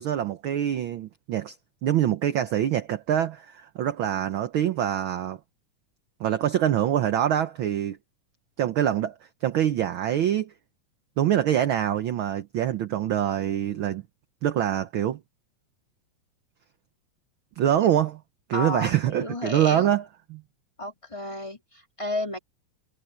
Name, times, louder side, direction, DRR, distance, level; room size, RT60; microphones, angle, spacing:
voice 1, 0.0-1.6 1.8-5.4 6.2-8.0 8.6-9.1 9.4-10.5 11.2-14.0 14.4-15.2 17.6-18.2 18.5-20.0 20.3-20.4, right 11 dB, 70° right, 1.2 m, -25 dB
voice 2, 18.5-19.9 20.8-22.4, left 2 dB, 10° left, 3.5 m, -32 dB
omnidirectional pair, 3.3 m